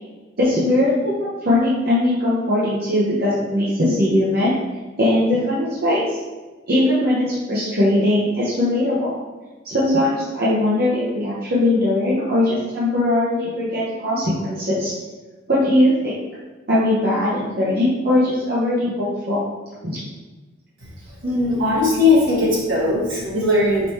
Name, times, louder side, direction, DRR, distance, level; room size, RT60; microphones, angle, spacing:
voice 1, 0.4-4.5 5.0-6.2 6.7-9.2 9.6-14.9 15.5-16.1 16.7-19.4 19.8-20.0, left 1 dB, 45° right, -9 dB, 0.9 m, -20 dB
voice 2, 21.2-23.9, left 2 dB, 70° right, -5 dB, 1.5 m, -18 dB
5.1 x 2.9 x 3.2 m, 1.2 s
head